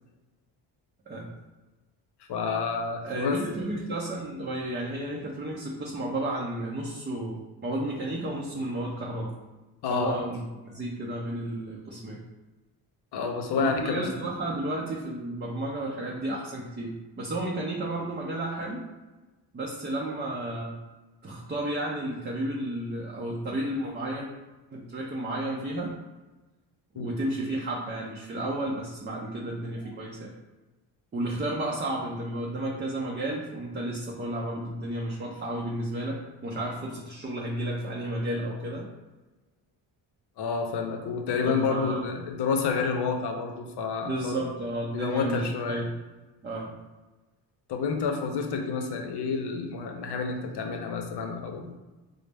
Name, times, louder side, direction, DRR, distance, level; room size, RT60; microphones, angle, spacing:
voice 1, 2.3-3.4 9.8-10.2 13.1-14.1 27.0-27.2 40.4-44.4 44.9-45.8 47.7-51.7, left 5 dB, 65° left, 4 dB, 0.7 m, -29 dB
voice 2, 3.0-9.3 9.9-12.2 13.6-18.8 19.5-20.8 21.2-24.3 24.7-25.9 27.0-30.3 31.1-38.9 41.3-42.1 44.0-46.0 46.4-46.8, right 1 dB, 25° right, -3 dB, 0.5 m, -32 dB
3.9 x 2.0 x 3.4 m, 1.2 s
cardioid pair, 80°, 45 cm